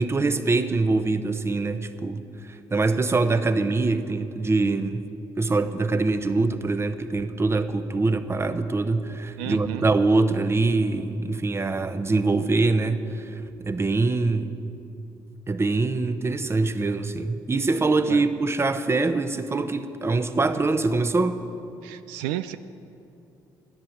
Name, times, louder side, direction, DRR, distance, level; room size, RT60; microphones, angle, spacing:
voice 1, 0.0-2.2 2.5-5.0 5.4-14.5 15.5-21.4, right 3 dB, 25° right, 10 dB, 1.0 m, -24 dB
voice 2, 9.4-9.8 18.1-18.2 21.8-22.6, right 13 dB, 90° right, 11 dB, 0.4 m, -32 dB
14.0 x 10.0 x 7.3 m, 2.8 s
hypercardioid pair, 55°, 10 cm